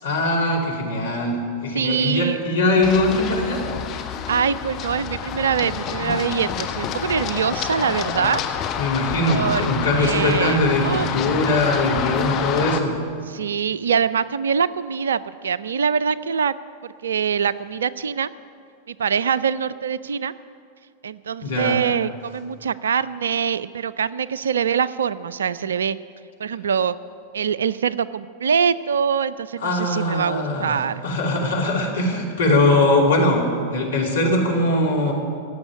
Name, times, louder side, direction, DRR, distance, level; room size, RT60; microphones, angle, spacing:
voice 1, 0.0-3.6 8.8-12.9 21.4-21.8 29.6-35.1, left 2 dB, 70° left, -2 dB, 2.9 m, -21 dB
voice 2, 1.7-2.4 4.3-8.4 9.3-9.7 9.9-10.6 10.8-11.1 13.3-16.5 17.0-18.3 18.9-20.3 21.0-26.0 26.4-27.0 27.3-31.0, right 7 dB, 65° right, 18 dB, 0.4 m, -23 dB
Run, 2.8-12.8, left 8 dB, 35° left, 1.1 m, -28 dB
16.0 x 7.1 x 9.8 m, 2.2 s
figure-of-eight pair, 90°, 0 cm